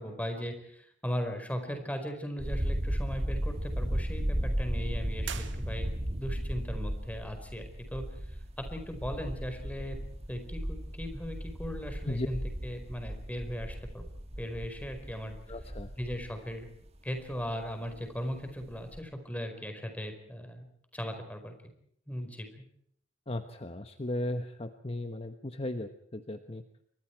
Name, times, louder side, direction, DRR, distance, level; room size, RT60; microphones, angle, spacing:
voice 1, 0.0-8.0 8.6-10.0 10.3-14.0 14.4-15.4 16.0-16.7 17.0-20.7 20.9-21.5 22.1-22.6, equal, 10° left, 6 dB, 4.8 m, -38 dB
sound 1, 2.4-18.1 18.5-19.0, equal, 35° right, 1.9 m, -35 dB
sound 2, 5.2-6.3, right 9 dB, 90° right, 1.8 m, -43 dB
voice 2, 15.5-15.9 23.3-26.6, left 1 dB, 35° left, 7 dB, 1.2 m, -36 dB
29.0 x 24.0 x 4.7 m, 0.68 s
head